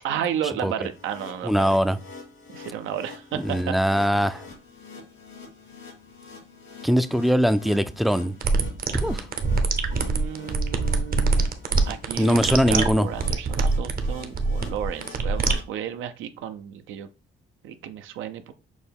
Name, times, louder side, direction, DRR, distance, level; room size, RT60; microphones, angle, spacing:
voice 1, 0.0-1.8 2.5-3.8 4.1-4.4 9.9-11.5 11.9-17.1 17.6-18.5, right 9 dB, 85° right, 0.5 m, -33 dB
sound 1, 0.8-15.6, left 5 dB, 85° left, 2.2 m, -45 dB
voice 2, 1.4-2.0 3.3-4.4 6.8-8.3 9.0-9.2 12.2-13.1, equal, ahead, 0.3 m, -21 dB
sound 2, 8.4-15.5, right 3 dB, 50° right, 0.7 m, -24 dB
6.1 x 2.2 x 3.5 m
cardioid pair, 90°, 20 cm